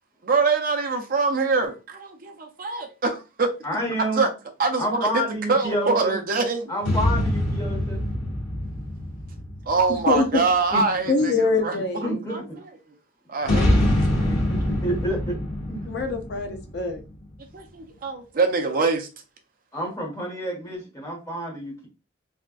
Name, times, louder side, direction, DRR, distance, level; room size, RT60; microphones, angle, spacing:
voice 1, 0.2-3.5 4.2-4.3 4.6-5.2 5.5-6.7 9.7-12.4 13.3-14.3 17.5-19.1, right 4 dB, 45° right, 0.5 m, -24 dB
voice 2, 3.6-4.2 4.8-6.2 6.7-8.0 10.7-10.8 11.3-11.4 12.0-12.6 14.2-15.4 15.7-15.8 19.7-21.9, equal, 15° left, 1.2 m, -29 dB
sound 1, 6.8-10.5 13.4-17.2, left 1 dB, 85° left, 1.2 m, -25 dB
voice 3, 9.9-10.4 11.1-12.2 15.8-17.0, left 3 dB, 55° left, 0.5 m, -24 dB
3.4 x 2.5 x 2.3 m
head